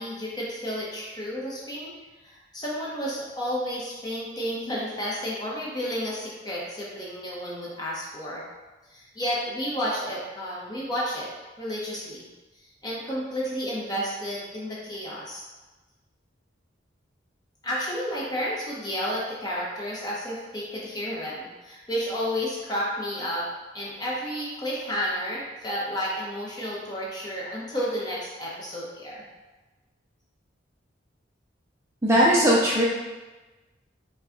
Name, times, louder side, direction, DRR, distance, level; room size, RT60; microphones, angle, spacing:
voice 1, 0.0-1.9 2.2-8.4 8.9-11.3 11.6-12.3 12.8-15.4 17.6-23.4 23.7-29.2, equal, 20° left, -5 dB, 1.0 m, -31 dB
voice 2, 32.0-32.8, equal, 15° right, -6 dB, 0.5 m, -19 dB
5.4 x 2.3 x 3.8 m, 1.2 s
head